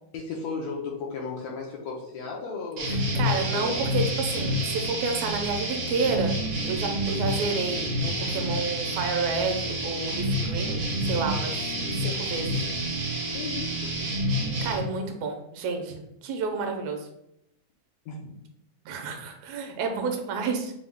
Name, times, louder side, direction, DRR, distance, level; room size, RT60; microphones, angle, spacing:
voice 1, 0.1-3.7 13.3-14.0 18.1-18.2, left 4 dB, 75° left, -1 dB, 1.8 m, -35 dB
sound 1, 2.8-14.8, equal, 60° right, 1.5 m, -28 dB
voice 2, 2.9-6.3 6.6-12.7 14.6-17.1 18.9-20.7, right 4 dB, 75° right, 3 dB, 1.9 m, -30 dB
5.2 x 2.3 x 3.5 m, 0.79 s
omnidirectional pair, 3.3 m